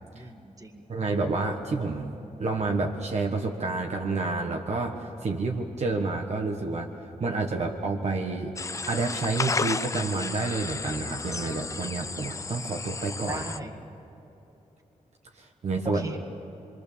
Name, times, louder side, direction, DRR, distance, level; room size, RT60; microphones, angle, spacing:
voice 1, 0.1-0.8 13.3-13.8 15.8-16.2, right 2 dB, 25° right, 2 dB, 1.9 m, -38 dB
voice 2, 0.9-6.9 7.2-8.5 8.9-13.4 15.4-16.1, right 3 dB, 55° right, 2 dB, 1.5 m, -29 dB
sound 1, 8.6-13.6, left 4 dB, 25° left, 0.4 m, -33 dB
25.5 x 23.0 x 7.1 m, 3.0 s
wide cardioid pair, 135°, 13 cm